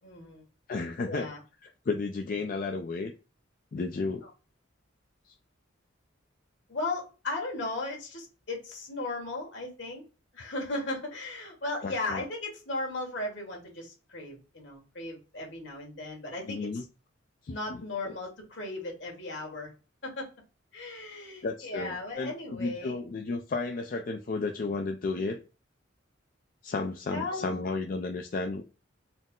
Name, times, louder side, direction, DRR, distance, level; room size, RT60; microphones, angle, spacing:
voice 1, 0.0-0.4 1.1-1.4 4.2-4.3 6.7-10.0 10.3-16.8 17.5-19.7 20.0-20.3 20.7-23.0 27.1-27.6, left 2 dB, 70° left, 1.6 m, -36 dB
voice 2, 0.7-1.3 1.6-3.1 3.7-4.2 11.8-12.2 16.5-16.8 17.4-17.8 18.1-18.2 21.4-25.4 26.6-28.6, left 3 dB, 45° left, 0.3 m, -33 dB
4.2 x 2.0 x 3.6 m
head